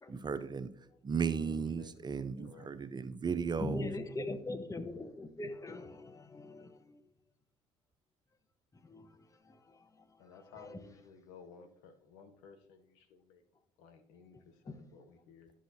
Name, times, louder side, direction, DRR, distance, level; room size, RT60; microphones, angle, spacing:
voice 1, 0.1-0.7 1.0-3.9, right 6 dB, 30° right, 0.5 m, -35 dB
voice 2, 1.3-2.8 10.2-13.4 13.8-15.5, left 5 dB, 80° left, 0.8 m, -56 dB
voice 3, 3.6-7.0 8.7-10.2 10.6-10.8 14.7-14.8, left 2 dB, 25° left, 1.1 m, -42 dB
11.5 x 6.2 x 2.8 m
hypercardioid pair, 55°, 14 cm